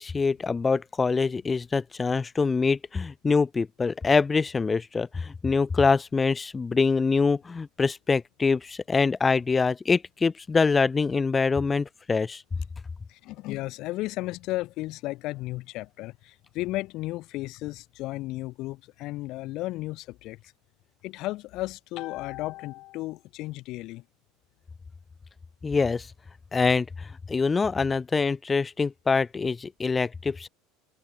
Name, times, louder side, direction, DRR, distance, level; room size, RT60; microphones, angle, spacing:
voice 1, 0.0-12.4 25.6-26.1 26.5-30.5, left 4 dB, 20° left, 1.5 m, -25 dB
voice 2, 13.1-20.4 21.0-24.0, left 18 dB, 60° left, 4.6 m, -34 dB
hypercardioid pair, 85°, 0 cm